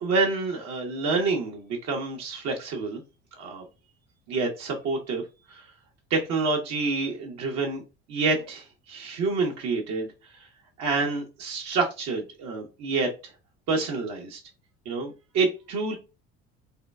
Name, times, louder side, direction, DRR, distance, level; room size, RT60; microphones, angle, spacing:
voice 1, 0.0-3.0 3.4-3.6 4.3-5.2 5.5-5.7 6.1-7.8 8.1-10.1 10.4-10.5 10.8-13.3 13.7-14.4 14.9-16.0, right 3 dB, 65° right, 1 dB, 0.9 m, -28 dB
3.6 x 2.2 x 2.2 m, 0.29 s
supercardioid pair, 80°, 30 cm